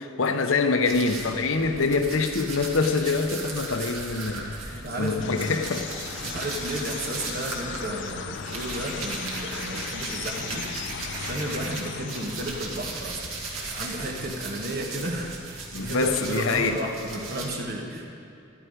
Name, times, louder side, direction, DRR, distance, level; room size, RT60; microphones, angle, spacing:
voice 1, 0.0-5.8 6.2-6.4 15.7-16.8, left 4 dB, 70° left, 7 dB, 0.7 m, -25 dB
sound 1, 0.8-11.8 12.1-17.5, right 3 dB, 80° right, 1.8 m, -36 dB
voice 2, 4.7-5.6 6.3-10.7 11.1-13.3 13.7-18.0, right 1 dB, 45° right, 1 dB, 1.3 m, -33 dB
sound 2, 5.2-13.3, left 8 dB, 55° left, 0.3 m, -38 dB
12.5 x 11.5 x 5.1 m, 2.6 s
head